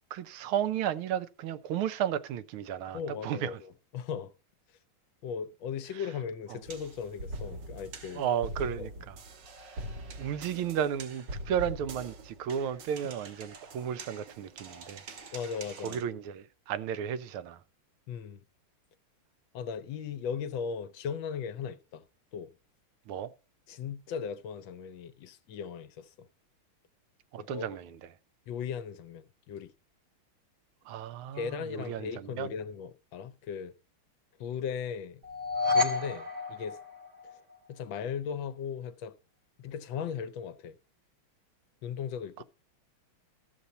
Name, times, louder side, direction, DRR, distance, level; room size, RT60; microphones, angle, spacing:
voice 1, 0.1-3.6 5.9-6.0 6.5-6.6 8.1-9.2 10.2-15.0 15.8-17.6 23.1-23.3 27.3-28.0 30.9-32.5 42.4-42.5, right 9 dB, 85° right, 1.6 m, -33 dB
voice 2, 2.9-4.3 5.2-8.3 8.8-8.9 15.3-16.0 18.1-18.4 19.5-22.0 22.3-22.5 23.7-26.3 27.4-27.7 28.5-29.7 31.3-33.7 34.4-35.2 35.7-36.8 37.7-39.2 39.6-40.8 41.8-42.4, left 7 dB, 70° left, 1.3 m, -37 dB
sound 1, 6.6-16.0, right 1 dB, 65° right, 1.9 m, -43 dB
sound 2, 35.2-37.5, left 3 dB, 45° right, 1.2 m, -30 dB
13.5 x 6.9 x 4.0 m
omnidirectional pair, 2.3 m